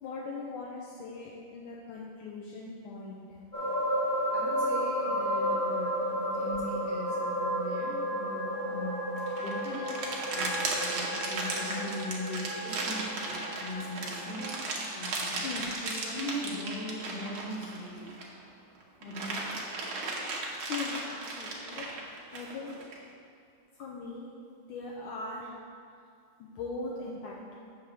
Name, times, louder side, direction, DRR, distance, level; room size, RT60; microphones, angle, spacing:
voice 1, 0.0-3.2 15.4-15.8 20.7-22.8 23.7-24.3 24.7-25.5 26.4-27.4, left 3 dB, 75° left, -3 dB, 1.5 m, -40 dB
sound 1, 3.5-15.3 15.7-15.8, equal, 25° left, 1.2 m, -33 dB
voice 2, 4.3-9.1 9.4-15.5 15.8-18.2 19.0-19.6, left 1 dB, 50° left, -6 dB, 1.9 m, -40 dB
sound 2, 9.2-18.4 18.8-23.0, right 3 dB, 75° right, 1.8 m, -36 dB
7.8 x 3.6 x 6.0 m, 2.4 s
omnidirectional pair, 2.3 m